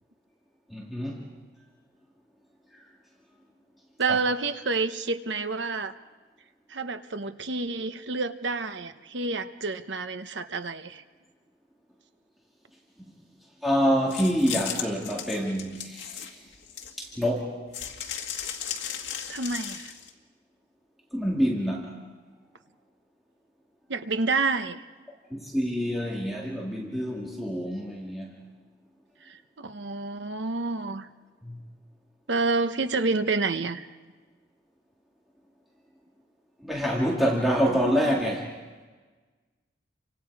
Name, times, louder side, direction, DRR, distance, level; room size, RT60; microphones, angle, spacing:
voice 1, 0.7-1.3 4.1-4.2 13.6-16.4 17.0-17.5 21.1-21.9 25.3-28.3 31.4-31.6 36.6-38.5, equal, ahead, -4 dB, 2.3 m, -26 dB
voice 2, 4.0-5.9 6.7-11.0 19.3-19.9 23.9-24.8 29.2-31.1 32.3-33.9, right 3 dB, 70° right, 9 dB, 1.0 m, -29 dB
sound 1, 14.1-17.2 17.7-20.1, left 8 dB, 80° left, 2.1 m, -36 dB
29.5 x 25.0 x 4.8 m, 1.4 s
head